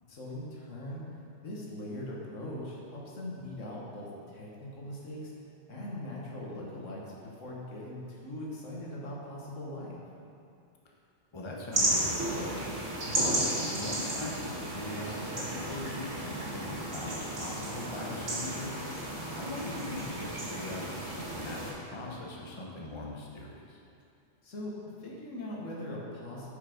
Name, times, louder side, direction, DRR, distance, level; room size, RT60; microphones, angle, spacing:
voice 1, 0.1-1.0 1.4-5.3 5.7-10.0 13.0-13.4 24.4-26.5, left 1 dB, 90° left, -4 dB, 1.8 m, -41 dB
voice 2, 11.3-12.8 13.2-18.7 19.3-23.8, left 2 dB, 25° left, -2 dB, 0.9 m, -41 dB
sound 1, 11.7-21.7, right 1 dB, 80° right, 2.0 m, -33 dB
7.6 x 5.7 x 5.1 m, 2.5 s
omnidirectional pair, 1.3 m